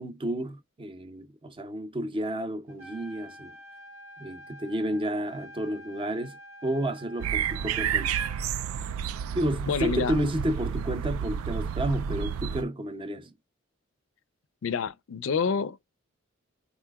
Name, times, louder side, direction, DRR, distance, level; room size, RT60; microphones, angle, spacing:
voice 1, 0.0-3.5 4.2-8.1 9.3-13.3, right 1 dB, 25° right, 0.6 m, -31 dB
Trumpet, 2.7-8.5, equal, 65° right, 0.7 m, -48 dB
sound 1, 7.2-12.6, right 8 dB, 90° right, 0.3 m, -30 dB
voice 2, 9.7-10.2 14.6-15.9, left 5 dB, 65° left, 0.4 m, -28 dB
4.1 x 2.8 x 2.3 m
head